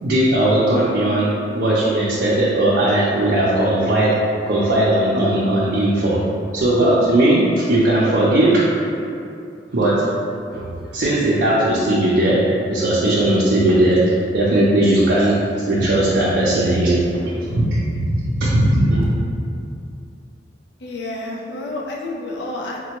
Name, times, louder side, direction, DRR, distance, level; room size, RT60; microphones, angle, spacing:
voice 1, 0.0-1.3 1.5-4.1 4.5-6.2 6.5-8.7 9.7-10.0 10.5-10.6 10.9-12.4 12.7-14.0 14.3-15.4 15.6-19.0, right 1 dB, 65° right, -8 dB, 0.5 m, -17 dB
voice 2, 20.8-22.8, left 2 dB, 70° left, -2 dB, 0.5 m, -29 dB
4.2 x 2.2 x 2.9 m, 2.5 s
head